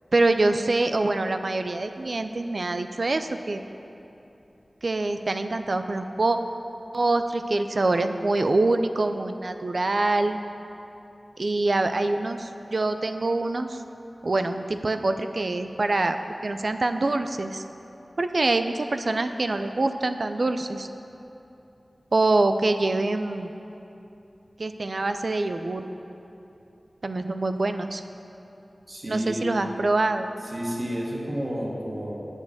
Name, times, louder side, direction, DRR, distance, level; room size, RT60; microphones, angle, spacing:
voice 1, 0.1-3.6 4.8-6.4 6.9-10.4 11.4-13.8 14.2-16.2 16.4-17.6 18.2-20.9 22.1-23.5 24.6-25.9 27.0-28.0 29.1-30.3, right 2 dB, 65° right, 8 dB, 0.4 m, -25 dB
voice 2, 28.9-29.5 30.5-32.2, equal, 45° right, -3 dB, 1.7 m, -30 dB
8.0 x 7.2 x 6.5 m, 2.9 s
wide cardioid pair, 55°, 0 cm